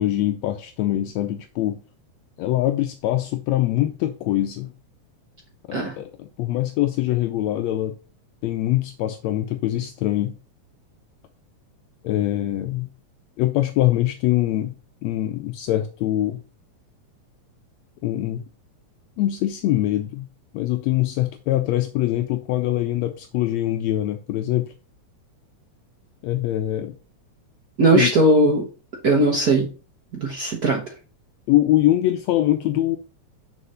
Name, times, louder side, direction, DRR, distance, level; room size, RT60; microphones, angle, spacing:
voice 1, 0.0-1.8 2.4-4.7 5.7-7.9 8.4-10.4 12.0-12.9 13.4-14.7 15.0-16.4 18.0-18.4 19.2-20.3 20.5-24.7 26.2-27.0 27.9-28.1 31.5-33.0, left 14 dB, 80° left, 1.7 m, -23 dB
voice 2, 27.8-28.6 29.0-29.7 30.2-30.8, right 2 dB, 70° right, 0.9 m, -18 dB
6.5 x 4.9 x 5.5 m
omnidirectional pair, 3.3 m